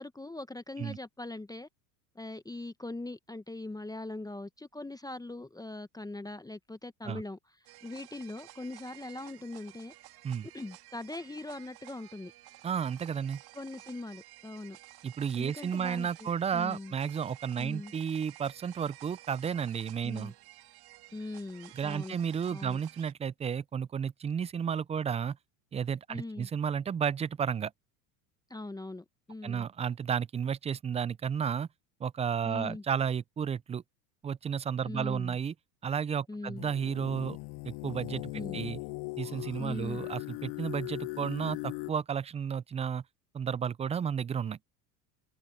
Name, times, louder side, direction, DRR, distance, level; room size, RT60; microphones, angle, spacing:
voice 1, 0.0-1.7 2.1-7.4 7.8-9.9 10.5-12.3 13.5-14.8 15.4-16.9 17.6-17.9 20.0-20.3 21.1-22.2 22.5-22.8 26.1-26.5 28.5-29.7 32.5-32.8 34.8-35.4 36.3-36.6 38.3-38.6 39.6-40.0, left 2 dB, 10° left, 0.9 m, -41 dB
sound 1, 7.7-23.1, right 17 dB, 50° right, 2.2 m, -53 dB
voice 2, 12.6-13.4 15.0-20.3 21.8-25.4 25.7-27.7 29.4-31.7 32.0-33.8 34.2-35.5 35.8-37.4 37.6-38.8 39.2-43.0 43.3-44.6, right 7 dB, 15° right, 0.4 m, -32 dB
sound 2, 36.6-41.9, left 26 dB, 55° left, 0.7 m, -39 dB
hypercardioid pair, 90°, 48 cm